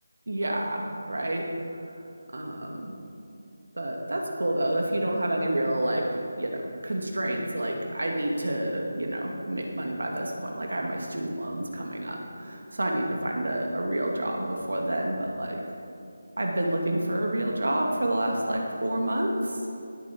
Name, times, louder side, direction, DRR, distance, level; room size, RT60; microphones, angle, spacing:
voice 1, 0.3-1.4 2.3-3.0 3.7-6.0 6.4-15.6 16.4-19.5, right 1 dB, 85° right, 0 dB, 2.5 m, -29 dB
19.0 x 8.9 x 4.7 m, 2.6 s
figure-of-eight pair, 170°, 0 cm